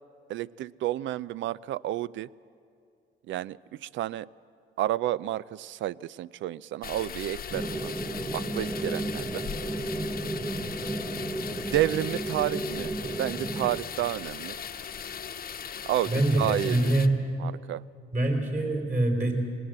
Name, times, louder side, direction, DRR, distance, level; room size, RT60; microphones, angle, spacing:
voice 1, 0.3-2.3 3.3-4.3 4.8-7.9 8.3-9.4 11.7-12.9 13.2-14.6 15.9-16.9 17.4-17.8, right 14 dB, 75° right, 20 dB, 0.4 m, -30 dB
sound 1, 6.8-17.1, left 7 dB, 50° left, 1.0 m, -38 dB
sound 2, 7.5-13.8, right 2 dB, 15° right, 1.0 m, -33 dB
voice 2, 16.1-17.2 18.1-19.3, right 1 dB, 40° right, 2 dB, 4.2 m, -25 dB
19.0 x 18.5 x 7.9 m, 2.4 s
cardioid pair, 90°, 20 cm